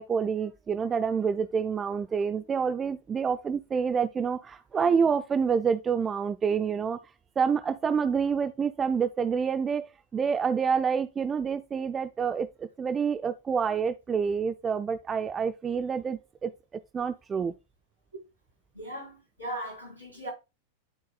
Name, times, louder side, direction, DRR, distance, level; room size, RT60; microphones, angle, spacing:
voice 1, 0.0-7.0 7.4-16.5 16.9-17.5, right 6 dB, 20° right, 0.4 m, -28 dB
voice 2, 18.7-20.3, right 1 dB, 85° right, 4.2 m, -38 dB
12.0 x 4.7 x 2.3 m
figure-of-eight pair, 90°, 0 cm